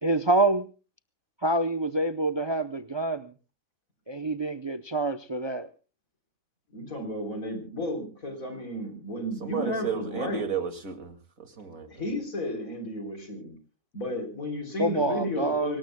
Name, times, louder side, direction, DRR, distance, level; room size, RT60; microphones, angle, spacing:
voice 1, 0.0-0.7 1.4-3.3 4.1-5.7 14.8-15.8, right 2 dB, 30° right, 0.5 m, -26 dB
voice 2, 6.7-10.5 11.9-13.6 13.9-15.8, left 1 dB, 85° left, 4.2 m, -33 dB
voice 3, 9.4-11.1 11.6-11.9, right 7 dB, 80° right, 2.7 m, -32 dB
24.5 x 19.0 x 2.2 m
omnidirectional pair, 1.4 m